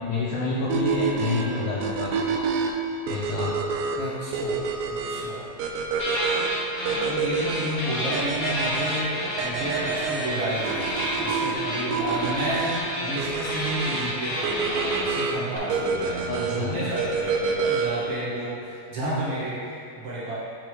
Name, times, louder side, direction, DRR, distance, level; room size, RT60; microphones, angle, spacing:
voice 1, 0.0-2.5 3.1-3.5 16.3-16.7, left 3 dB, 90° left, -6 dB, 1.7 m, -28 dB
ID Tracker, 0.7-18.1, right 5 dB, 90° right, 1.8 m, -28 dB
voice 2, 3.9-4.6 4.9-5.5 6.9-20.3, right 1 dB, 70° right, -9 dB, 1.1 m, -31 dB
sound 1, 6.0-7.1 7.3-15.6, left 1 dB, 60° left, 1.2 m, -30 dB
sound 2, 10.3-11.6 12.9-13.1 14.0-14.2, equal, 50° right, 1.5 m, -39 dB
10.0 x 4.6 x 2.3 m, 2.7 s
omnidirectional pair, 4.3 m